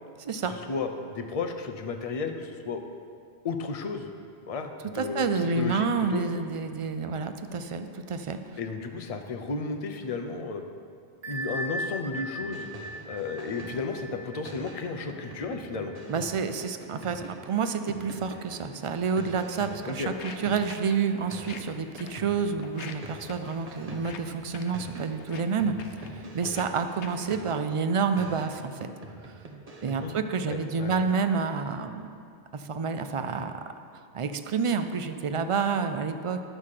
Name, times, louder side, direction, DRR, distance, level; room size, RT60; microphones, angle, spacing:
voice 1, 0.4-2.8 3.4-4.1 4.4-6.2 8.6-10.6 11.3-12.7 13.1-15.9 19.8-20.1 30.0-30.2 30.5-31.1, left 4 dB, 40° left, 5 dB, 0.7 m, -33 dB
voice 2, 4.9-8.6 16.1-28.9 29.3-29.4 29.8-32.1 32.5-33.5 34.1-36.4, right 5 dB, 55° right, 8 dB, 0.3 m, -29 dB
Bell, 11.2-16.7, equal, 70° right, 1.2 m, -39 dB
sound 1, 12.4-14.0 14.4-20.9 21.3-24.3 24.7-27.7 28.2-30.2, right 2 dB, 35° right, 1.0 m, -45 dB
Walk footsteps, 20.0-27.4, left 6 dB, 85° left, 1.0 m, -47 dB
11.0 x 5.7 x 6.5 m, 2.3 s
omnidirectional pair, 1.1 m